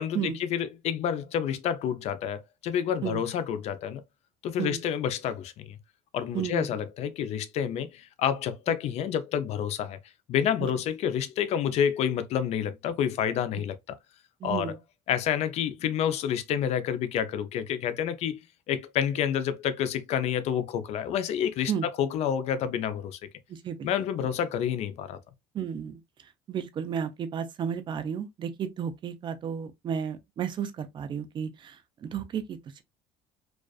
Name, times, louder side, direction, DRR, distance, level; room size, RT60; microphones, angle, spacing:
voice 1, 0.0-4.0 4.4-5.8 6.1-10.0 10.3-13.8 14.4-14.8 15.1-18.4 18.7-23.2 23.8-25.2, left 9 dB, 55° left, 0.4 m, -29 dB
voice 2, 6.3-6.7 10.6-10.7 14.4-14.8 21.7-21.9 23.5-23.9 24.2-24.3 25.5-26.0 26.5-32.8, right 8 dB, 35° right, 0.5 m, -33 dB
2.3 x 2.3 x 2.3 m
cardioid pair, 110°, 13 cm